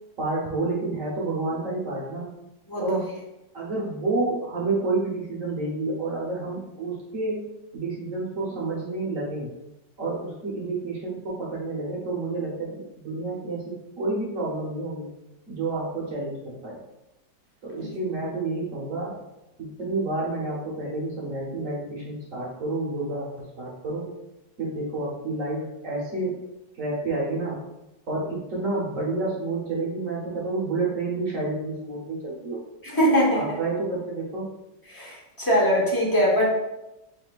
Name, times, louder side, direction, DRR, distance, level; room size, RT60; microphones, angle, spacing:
voice 1, 0.2-2.3 2.8-3.1 3.5-7.5 7.7-9.5 10.0-15.1 15.5-16.8 17.6-19.2 19.6-24.1 24.6-26.4 26.8-27.6 28.1-32.6 33.3-34.5, right 2 dB, 50° right, -4 dB, 1.3 m, -29 dB
voice 2, 32.8-33.6 34.9-36.5, equal, 15° left, -4 dB, 0.8 m, -22 dB
4.2 x 4.1 x 2.4 m, 0.93 s
omnidirectional pair, 1.9 m